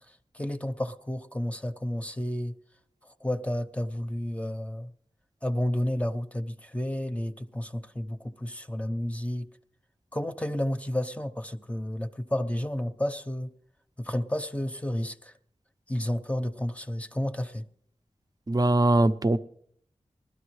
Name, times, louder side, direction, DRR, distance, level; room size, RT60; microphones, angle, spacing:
voice 1, 0.1-2.5 3.0-4.9 5.4-9.5 10.1-13.5 14.0-15.3 15.9-17.6, left 1 dB, 10° left, 0.8 m, -31 dB
voice 2, 18.5-19.4, right 2 dB, 30° right, 0.6 m, -21 dB
19.5 x 12.0 x 3.2 m
cardioid pair, 50°, 12 cm